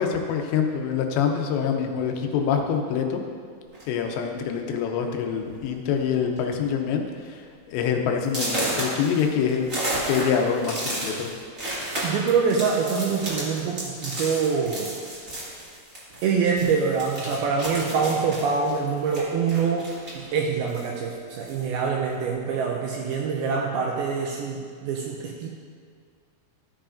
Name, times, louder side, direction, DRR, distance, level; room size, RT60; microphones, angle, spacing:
voice 1, 0.0-3.2 3.9-9.7 10.1-11.3, left 7 dB, 85° left, 4 dB, 3.0 m, -25 dB
sound 1, 3.7-4.0 4.9-5.0 5.3-5.6 5.9-6.4 6.8-6.9 7.4-7.5 8.2-16.3 16.6-20.3 20.7-21.7, right 1 dB, 35° right, 1.2 m, -32 dB
voice 2, 12.0-14.9 16.2-25.5, right 5 dB, 85° right, 0 dB, 2.2 m, -25 dB
13.5 x 7.2 x 2.6 m, 2.1 s
omnidirectional pair, 5.0 m